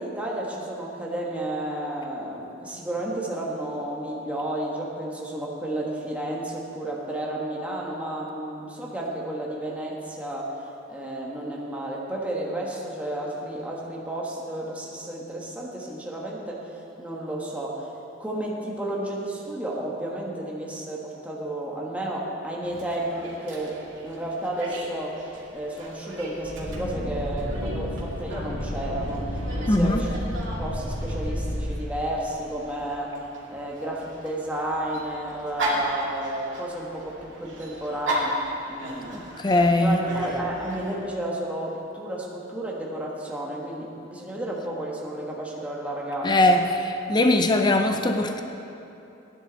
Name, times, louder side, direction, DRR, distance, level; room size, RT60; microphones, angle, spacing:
voice 1, 0.0-17.9 18.2-23.8 24.0-30.3 30.6-38.4 38.7-39.3 39.8-46.6, right 1 dB, 5° right, -4 dB, 1.3 m, -32 dB
Dog, 22.6-40.9, right 1 dB, 65° right, 2.4 m, -36 dB
sound 1, 26.4-31.6, equal, 75° left, 3.1 m, -31 dB
voice 2, 29.7-30.0 39.1-40.0 46.2-48.4, left 1 dB, 20° left, 5 dB, 0.5 m, -21 dB
15.5 x 10.0 x 3.9 m, 2.9 s
head